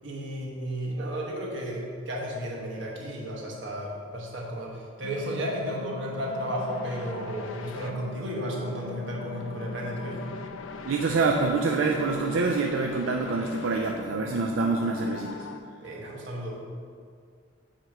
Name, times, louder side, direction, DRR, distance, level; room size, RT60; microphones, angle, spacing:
voice 1, 0.0-10.4 15.8-16.6, equal, 70° right, -2 dB, 1.2 m, -33 dB
sound 1, 5.0-15.6, left 3 dB, 85° left, 0.4 m, -40 dB
voice 2, 10.8-15.4, right 4 dB, 90° right, 2 dB, 0.4 m, -26 dB
7.5 x 2.9 x 4.9 m, 2.1 s
head